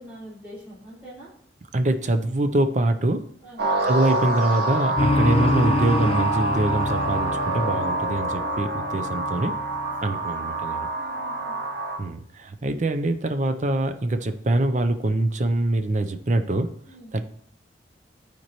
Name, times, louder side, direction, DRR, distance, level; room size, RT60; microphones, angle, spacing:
voice 1, 0.0-1.3 3.4-3.7 10.8-11.5 16.9-17.1, equal, 10° right, -10 dB, 3.3 m, -44 dB
voice 2, 1.7-3.3 3.8-9.5 10.0-10.9 12.0-16.7 17.1-17.2, right 2 dB, 40° right, 8 dB, 0.6 m, -24 dB
sound 1, 3.6-12.0, right 2 dB, 60° right, 1.1 m, -26 dB
sound 2, 5.0-10.6, left 2 dB, 30° left, 0.3 m, -28 dB
13.0 x 4.4 x 3.0 m, 0.67 s
head